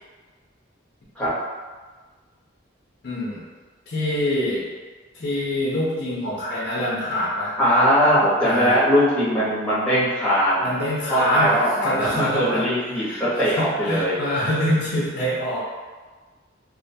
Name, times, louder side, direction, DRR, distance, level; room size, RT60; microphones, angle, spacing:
voice 1, 3.0-3.4 3.9-4.7 5.1-7.6 8.4-8.8 10.6-12.7 12.9-15.6, equal, 50° left, -8 dB, 0.5 m, -25 dB
voice 2, 7.6-10.7 11.1-14.2, equal, 5° left, -11 dB, 0.7 m, -20 dB
2.4 x 2.1 x 2.6 m, 1.4 s
head